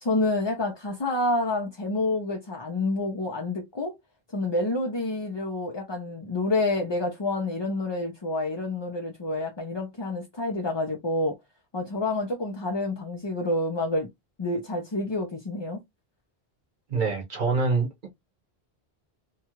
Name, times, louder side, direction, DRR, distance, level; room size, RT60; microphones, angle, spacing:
voice 1, 0.0-4.0 4.3-11.4 11.7-14.1 14.4-15.8, left 2 dB, 35° left, 0.5 m, -28 dB
voice 2, 16.9-18.1, right 4 dB, 55° right, 0.9 m, -25 dB
2.9 x 2.3 x 2.8 m
omnidirectional pair, 1.0 m